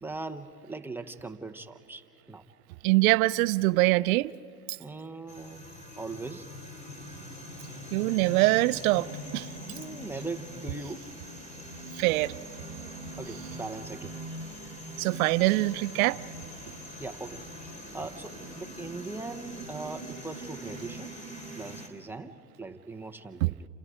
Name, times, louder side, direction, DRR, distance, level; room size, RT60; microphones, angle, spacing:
voice 1, 0.0-2.4 4.8-5.6 6.0-6.5 9.6-11.1 13.2-14.1 17.0-21.1 21.6-23.7, right 3 dB, 5° right, 0.9 m, -40 dB
voice 2, 2.8-4.3 7.9-9.1 9.3-9.5 12.0-12.4 15.0-16.2 23.4-23.5, right 21 dB, 60° right, 0.7 m, -23 dB
sound 1, 5.3-21.9, equal, 15° left, 3.6 m, -42 dB
29.5 x 27.5 x 5.1 m
hypercardioid pair, 115°, 48 cm